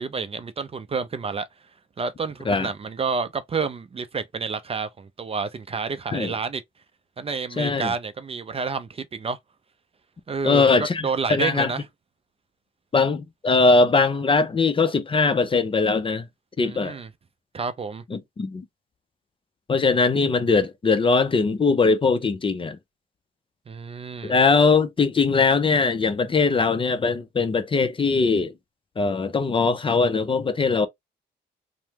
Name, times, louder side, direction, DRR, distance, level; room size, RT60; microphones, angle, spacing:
voice 1, 0.0-1.5 2.0-6.6 7.2-9.4 10.3-11.8 16.6-17.1 17.5-18.0 23.7-24.4, right 5 dB, 30° right, 0.5 m, -29 dB
voice 2, 7.6-7.9 10.4-11.7 12.9-16.3 16.6-17.0 18.1-18.6 19.7-22.8 24.2-28.5 29.0-30.9, left 4 dB, 25° left, 0.5 m, -21 dB
3.2 x 2.0 x 2.8 m
cardioid pair, 90°, 20 cm